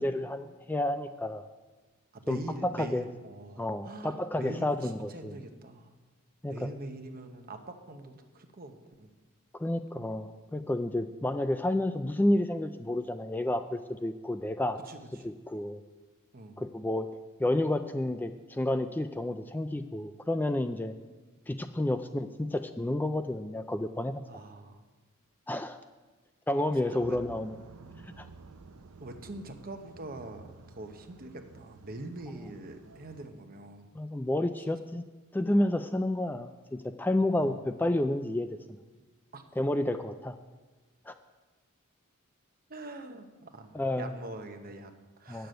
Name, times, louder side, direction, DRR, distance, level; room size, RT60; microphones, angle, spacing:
voice 1, 0.0-1.4 2.3-3.0 3.6-5.3 6.4-6.7 9.5-14.8 15.2-15.8 16.6-17.1 17.4-20.9 21.5-24.2 25.5-25.8 26.5-27.5 28.2-28.3 33.9-35.0 35.3-38.8 39.6-40.4 41.1-41.2 43.7-44.1 45.3-45.5, left 1 dB, 10° left, 9 dB, 0.3 m, -30 dB
voice 2, 2.1-5.9 6.5-9.1 14.8-15.0 16.3-16.6 24.3-24.8 26.9-27.2 29.0-33.9 37.3-37.7 39.3-39.4 42.7-45.5, right 2 dB, 45° right, 6 dB, 1.0 m, -44 dB
sound 1, 27.0-33.3, right 4 dB, 90° right, 0.6 m, -52 dB
9.3 x 6.8 x 7.8 m, 1.3 s
head